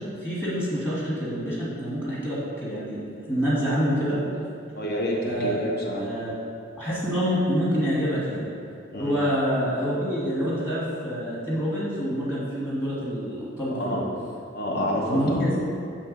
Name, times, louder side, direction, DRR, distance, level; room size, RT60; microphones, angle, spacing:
voice 1, 0.1-4.2 5.3-5.6 6.0-6.3 6.8-8.5 9.0-14.0 15.0-15.6, equal, 15° left, -9 dB, 1.7 m, -27 dB
voice 2, 4.7-6.1 8.9-9.2 9.6-9.7 13.7-14.0 14.5-15.4, equal, 55° left, -1 dB, 1.1 m, -28 dB
8.4 x 3.3 x 5.1 m, 2.4 s
head